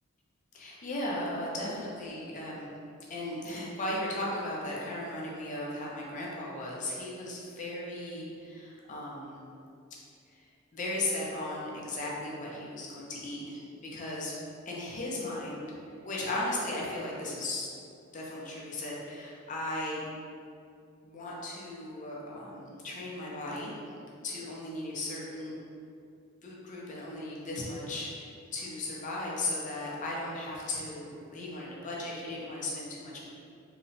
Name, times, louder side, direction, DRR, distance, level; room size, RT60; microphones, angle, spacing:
voice 1, 0.5-2.7 3.1-9.4 10.3-10.4 10.7-14.3 14.7-15.7 16.0-17.7 18.1-20.0 21.0-23.7 24.2-25.5 26.4-33.2, left 1 dB, 40° left, -4 dB, 0.5 m, -36 dB
2.8 x 2.1 x 2.6 m, 2.5 s
head